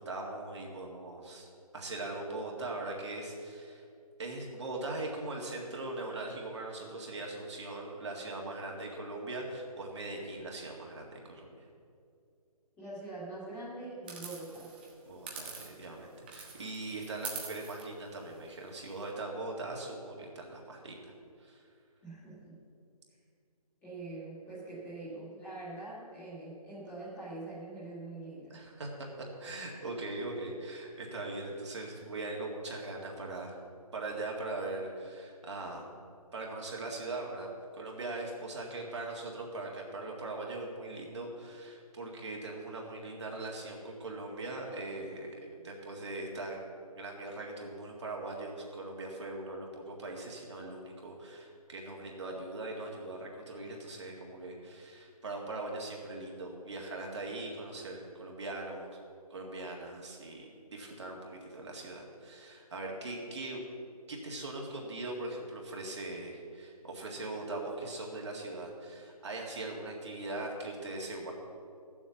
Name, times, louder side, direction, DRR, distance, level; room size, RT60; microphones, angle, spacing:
voice 1, 0.0-3.8 4.2-11.5 15.1-21.1 21.4-21.6 28.5-28.9 29.4-33.6 33.9-35.9 36.3-37.5 37.7-46.6 47.0-58.9 59.3-63.6 64.1-71.3, right 2 dB, 45° right, -1 dB, 2.0 m, -40 dB
voice 2, 12.8-14.7 22.0-22.6 23.8-28.6, right 2 dB, 5° left, -11 dB, 2.2 m, -44 dB
sound 1, 14.1-16.0 16.3-19.1, right 5 dB, 15° right, 1.0 m, -45 dB
14.0 x 7.4 x 7.0 m, 2.4 s
hypercardioid pair, 175°, 20 cm